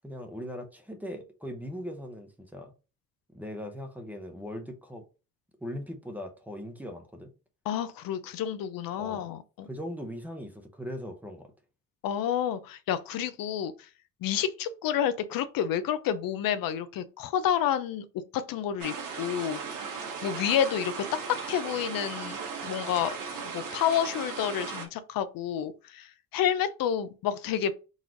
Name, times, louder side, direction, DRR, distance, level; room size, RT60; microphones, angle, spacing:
voice 1, 0.0-2.7 3.3-5.0 5.6-7.3 8.9-9.3 9.7-11.5, equal, 5° right, 0.6 m, -39 dB
voice 2, 7.7-9.7 12.0-13.9 14.2-18.1 18.3-19.6 20.2-23.2 23.4-27.7, left 9 dB, 80° left, 0.6 m, -29 dB
sound 1, 18.8-24.9, right 5 dB, 70° right, 1.4 m, -37 dB
4.0 x 3.1 x 3.8 m
cardioid pair, 170°, 34 cm